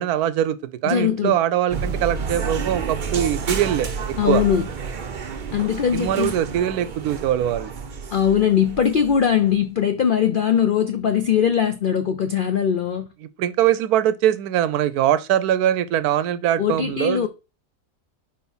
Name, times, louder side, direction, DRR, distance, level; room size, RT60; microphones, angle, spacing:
voice 1, 0.0-4.4 5.9-7.7 13.4-17.3, right 11 dB, 80° right, 1.1 m, -22 dB
voice 2, 0.8-1.4 4.2-4.7 5.5-6.3 8.1-13.1 16.6-17.3, left 8 dB, 75° left, 0.4 m, -20 dB
sound 1, 1.7-9.5, right 5 dB, 50° right, 0.6 m, -30 dB
4.5 x 4.4 x 5.4 m
omnidirectional pair, 1.6 m